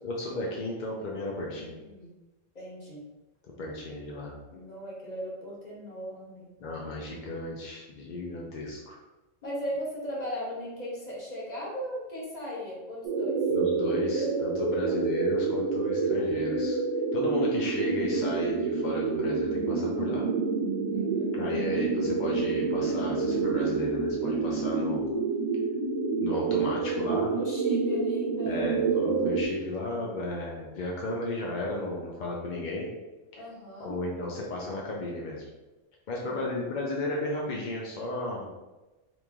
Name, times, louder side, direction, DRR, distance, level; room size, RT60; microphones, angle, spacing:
voice 1, 0.0-1.7 3.6-4.3 6.6-9.0 13.5-16.8 17.1-20.2 21.3-25.1 26.2-27.3 28.5-32.9 33.3-33.4 33.8-35.5 36.1-38.5, left 2 dB, 60° left, -2 dB, 0.5 m, -34 dB
voice 2, 1.4-2.1 2.5-3.0 4.5-6.5 9.4-13.4 14.8-15.1 20.9-21.4 26.7-28.7 33.3-34.0 36.2-36.7, equal, 35° left, -5 dB, 1.0 m, -38 dB
sound 1, 13.0-29.4, right 4 dB, 70° right, 0.9 m, -28 dB
3.0 x 2.5 x 3.4 m, 1.1 s
omnidirectional pair, 1.3 m